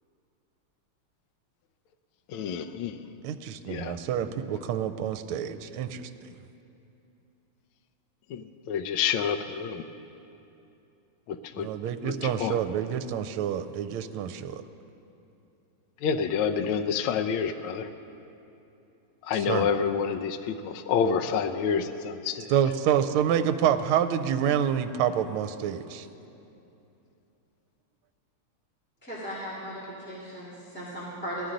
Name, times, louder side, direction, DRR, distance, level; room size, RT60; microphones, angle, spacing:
voice 1, 2.3-3.0 3.7-4.0 8.3-9.8 11.3-11.7 12.0-12.6 16.0-17.9 19.2-22.5, left 7 dB, 75° left, 7 dB, 1.4 m, -28 dB
voice 2, 3.2-6.1 11.6-14.6 19.5-19.7 22.5-26.1, right 9 dB, 80° right, 9 dB, 1.4 m, -27 dB
voice 3, 29.0-31.5, equal, 5° left, -9 dB, 2.0 m, -37 dB
18.0 x 13.0 x 3.9 m, 2.8 s
omnidirectional pair, 2.4 m